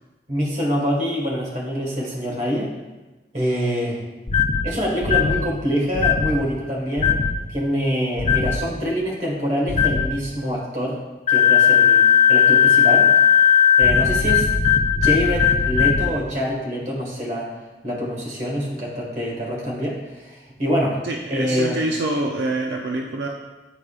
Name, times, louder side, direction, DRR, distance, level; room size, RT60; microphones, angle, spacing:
voice 1, 0.3-2.7 3.3-4.0 4.6-11.0 11.3-13.1 13.8-14.5 15.0-17.5 17.8-21.0 21.3-21.8, equal, 40° right, -3 dB, 1.6 m, -25 dB
sound 1, 4.3-4.6 5.0-5.4 6.0-6.3 7.0-7.3 8.2-8.6 9.7-10.1 11.3-16.1, left 8 dB, 35° left, 0.5 m, -16 dB
voice 2, 21.0-23.3, right 2 dB, 75° right, 1 dB, 0.5 m, -25 dB
9.1 x 4.8 x 2.4 m, 1.2 s
head